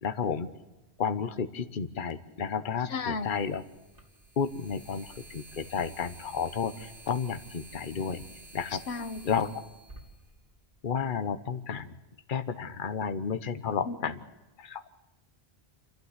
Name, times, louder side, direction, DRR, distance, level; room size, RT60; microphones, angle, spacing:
voice 1, 0.0-0.5 1.0-3.6 4.4-8.2 8.5-8.8 9.2-9.5 10.8-11.9 12.3-14.2 14.6-14.8, left 6 dB, 55° left, 11 dB, 1.1 m, -32 dB
sound 1, 1.7-1.8 3.1-11.0, right 2 dB, 55° right, 3.5 m, -51 dB
voice 2, 2.8-3.3 8.9-9.2 13.9-14.1, left 4 dB, 85° left, 10 dB, 1.4 m, -34 dB
29.5 x 12.0 x 8.1 m, 1.1 s
omnidirectional pair, 1.1 m